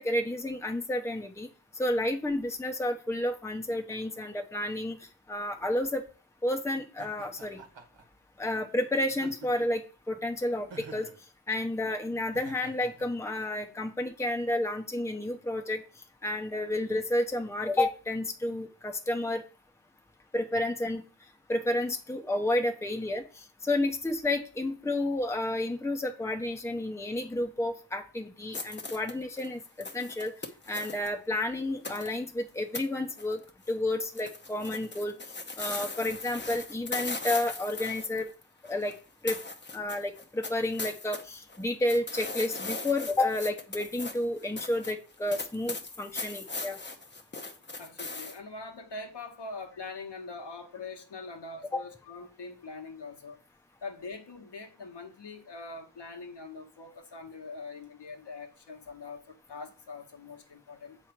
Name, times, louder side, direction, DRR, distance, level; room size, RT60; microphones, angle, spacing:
voice 1, 0.0-1.5 1.8-5.0 5.3-6.0 6.4-7.6 8.4-9.8 10.1-11.1 11.5-15.8 16.2-19.4 20.3-21.0 21.5-30.3 30.7-33.4 33.7-35.1 35.6-38.3 38.7-38.9 39.2-39.4 39.7-46.8 51.7-51.8, left 1 dB, 5° left, 0.9 m, -31 dB
Laughter, 7.0-8.0 9.1-9.8 10.7-11.2 12.3-13.1, right 4 dB, 70° right, 1.3 m, -48 dB
sound 1, 28.5-31.1 31.8-32.2 32.7-32.8 33.1-33.7 34.0-39.0 39.3-41.2 41.5-48.4, left 3 dB, 25° left, 0.9 m, -39 dB
voice 2, 47.8-53.4 53.8-61.0, left 3 dB, 65° left, 1.4 m, -43 dB
7.4 x 3.3 x 5.9 m
wide cardioid pair, 80°, 45 cm